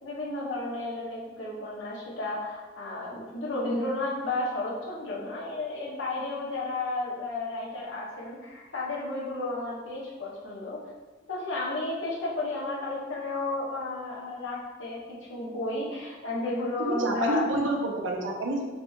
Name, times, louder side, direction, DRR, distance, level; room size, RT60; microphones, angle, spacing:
voice 1, 0.0-10.8 11.3-17.4, left 2 dB, 85° left, -6 dB, 1.2 m, -32 dB
voice 2, 16.8-18.7, right 1 dB, 85° right, 1 dB, 0.7 m, -28 dB
4.1 x 2.3 x 4.4 m, 1.4 s
head